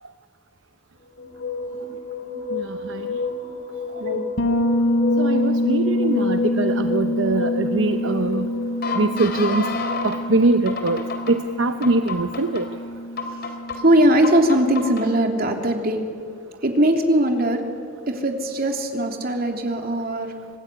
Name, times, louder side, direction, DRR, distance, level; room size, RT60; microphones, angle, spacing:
sound 1, 1.2-10.2 10.7-11.3 11.8-12.6 13.2-13.8 14.2-15.0, left 4 dB, 55° left, 3.2 m, -30 dB
Bass guitar, 4.4-14.0, left 1 dB, 80° left, 3.4 m, -25 dB
voice 1, 5.2-8.5 9.0-9.7 10.0-11.0 11.3-12.6, right 2 dB, 75° right, 8 dB, 0.8 m, -22 dB
voice 2, 13.8-16.0 16.6-17.6 18.1-20.3, right 1 dB, 50° right, 3 dB, 3.2 m, -20 dB
25.0 x 20.0 x 9.9 m, 2.2 s
head